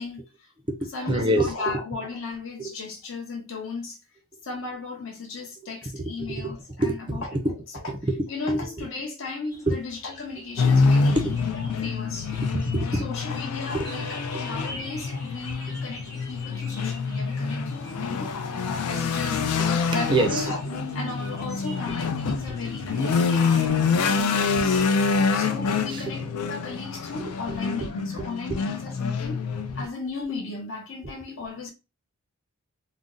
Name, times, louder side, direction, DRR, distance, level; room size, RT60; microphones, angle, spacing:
voice 1, 0.0-0.5 0.9-4.0 4.4-7.9 8.3-11.2 11.6-12.3 12.8-18.4 18.6-20.6 20.9-24.9 25.3-29.5 29.7-31.7, left 3 dB, 55° left, 0.8 m, -35 dB
voice 2, 0.7-1.8 2.6-2.7 5.6-7.6 7.8-8.9 9.7-9.8 10.4-11.4 12.4-13.1 13.7-13.9 14.3-14.4 19.6-19.7 19.9-20.8 21.2-21.3 21.9-22.0 24.8-25.2 25.9-26.2 27.2-28.6 31.0-31.1, right 1 dB, 20° right, 0.4 m, -29 dB
sound 1, 9.5-25.7, equal, 15° left, 0.9 m, -47 dB
sound 2, 10.6-29.8, left 4 dB, 85° left, 0.4 m, -26 dB
2.5 x 2.0 x 3.7 m
head